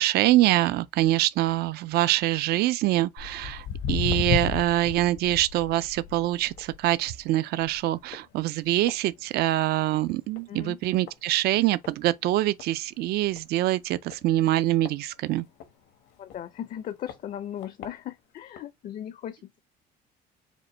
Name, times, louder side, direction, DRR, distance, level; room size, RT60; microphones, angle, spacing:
voice 1, 0.0-15.5, right 15 dB, 70° right, 0.4 m, -24 dB
Walk footsteps, 3.2-9.8 10.1-10.5 11.1-11.2 11.8-11.9 12.3-12.4 12.6-12.7 13.3-13.4 14.1-15.7 16.3-16.4 17.1-17.2 17.6-17.9 18.6-18.7, left 8 dB, 85° left, 1.1 m, -34 dB
voice 2, 10.5-10.8 16.2-19.6, left 10 dB, 50° left, 0.5 m, -37 dB
5.1 x 2.2 x 4.2 m
cardioid pair, 110°, 17 cm